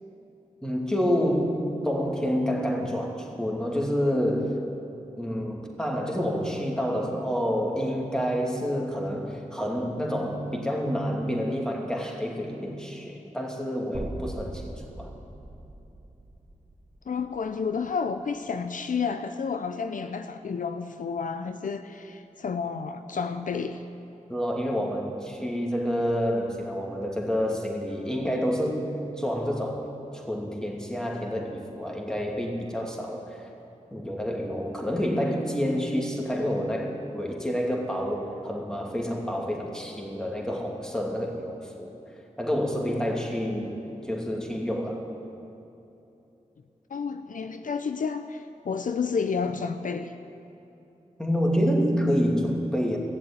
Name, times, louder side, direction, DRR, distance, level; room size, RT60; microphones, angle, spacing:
voice 1, 0.6-4.6 5.2-15.1 24.3-28.9 29.2-33.5 33.9-41.9 42.4-43.7 44.1-45.0 51.2-53.0, equal, 5° left, 0 dB, 2.6 m, -28 dB
sound 1, 13.9-18.1, right 1 dB, 40° right, 1.9 m, -40 dB
voice 2, 17.1-23.8 46.9-50.1, left 5 dB, 70° left, 9 dB, 0.6 m, -31 dB
15.5 x 7.4 x 8.8 m, 2.9 s
cardioid pair, 40°, 14 cm